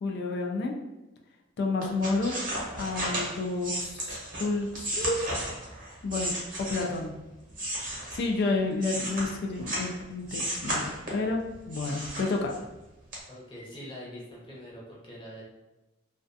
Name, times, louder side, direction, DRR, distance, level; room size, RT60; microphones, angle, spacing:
voice 1, 0.0-0.7 1.6-2.4 2.8-5.2 6.0-6.3 6.6-7.2 8.1-12.5, left 3 dB, 55° left, 2 dB, 0.3 m, -30 dB
sound 1, 1.8-7.1 7.5-9.9 10.3-11.3 11.7-12.8 13.1-13.2, right 1 dB, 45° right, 0.8 m, -34 dB
voice 2, 13.3-15.4, equal, 25° left, -5 dB, 0.7 m, -44 dB
2.3 x 2.2 x 2.5 m, 1.0 s
head